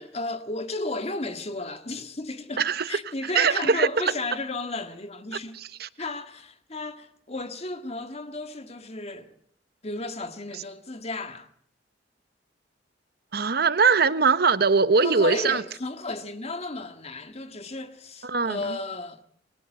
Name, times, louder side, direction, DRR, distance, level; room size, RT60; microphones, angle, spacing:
voice 1, 0.0-5.6 6.0-9.3 9.8-11.5 15.0-19.2, left 2 dB, 35° left, 1.9 m, -34 dB
voice 2, 2.6-3.0 3.3-4.1 5.5-5.9 13.3-15.6 18.2-18.8, right 5 dB, 55° right, 1.1 m, -22 dB
28.5 x 21.5 x 8.0 m
head